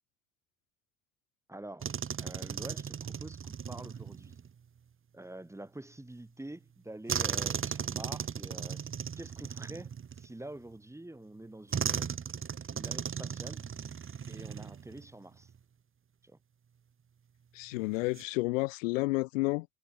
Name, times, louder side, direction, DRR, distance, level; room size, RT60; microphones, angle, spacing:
voice 1, 1.5-1.9 2.2-4.4 5.1-12.1 12.7-13.7 14.3-15.5 16.2-16.4, right 1 dB, 5° right, 4.5 m, -47 dB
sound 1, 1.8-4.5 7.1-10.6 11.7-15.1 15.4-15.6 17.9-18.2, right 7 dB, 30° right, 2.8 m, -36 dB
voice 2, 17.5-19.6, left 24 dB, 60° left, 1.6 m, -30 dB
figure-of-eight pair, 60°, 43 cm